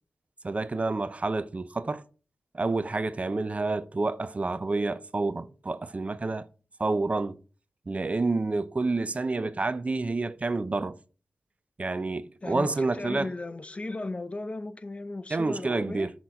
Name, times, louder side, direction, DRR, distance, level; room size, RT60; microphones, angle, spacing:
voice 1, 0.4-2.0 2.5-6.5 6.8-7.4 7.9-10.9 11.8-13.3 15.3-16.1, right 3 dB, 40° right, 0.6 m, -29 dB
voice 2, 12.4-16.1, left 2 dB, 35° left, 0.6 m, -36 dB
5.9 x 4.0 x 4.7 m
cardioid pair, 50°, 4 cm